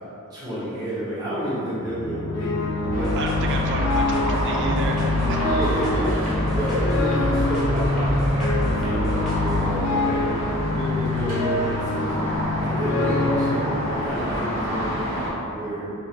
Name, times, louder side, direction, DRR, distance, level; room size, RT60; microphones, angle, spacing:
voice 1, 0.3-3.2 5.4-12.3 12.6-15.9, right 1 dB, 20° right, -12 dB, 1.2 m, -30 dB
sound 1, 1.8-13.6, left 3 dB, 90° left, 0.4 m, -26 dB
sound 2, 2.8-9.6, equal, ahead, 1.0 m, -28 dB
sound 3, 2.9-15.3, equal, 35° right, 1.4 m, -29 dB
voice 2, 3.1-5.0 5.3-5.4, right 2 dB, 55° right, 1 dB, 0.5 m, -30 dB
3.7 x 2.6 x 4.5 m, 2.9 s
head